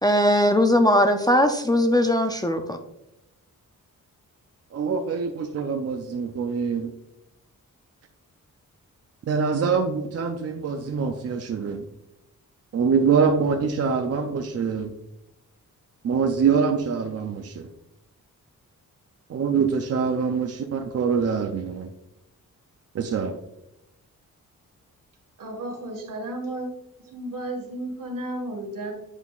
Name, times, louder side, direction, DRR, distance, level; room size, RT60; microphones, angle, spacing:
voice 1, 0.0-2.8, left 1 dB, 10° left, 5 dB, 0.4 m, -19 dB
voice 2, 4.7-6.9 9.3-11.8 12.7-14.9 16.0-17.7 19.3-21.9 22.9-23.4, right 5 dB, 50° right, 5 dB, 0.5 m, -24 dB
voice 3, 25.4-26.7 27.1-28.9, right 1 dB, 75° right, 2 dB, 1.7 m, -33 dB
8.1 x 5.5 x 2.4 m, 0.87 s
wide cardioid pair, 150°, 33 cm